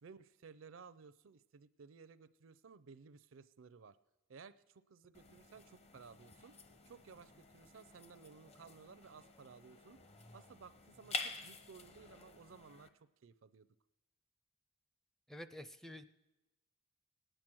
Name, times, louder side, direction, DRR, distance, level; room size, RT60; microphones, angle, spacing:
voice 1, 0.0-4.0 4.3-6.5 6.9-10.0 10.3-13.7, right 5 dB, 70° right, 15 dB, 0.5 m, -57 dB
sound 1, 5.1-12.9, left 3 dB, 30° left, 0.8 m, -49 dB
voice 2, 15.3-16.0, equal, ahead, 11 dB, 0.5 m, -49 dB
18.5 x 8.9 x 6.1 m, 1.0 s
head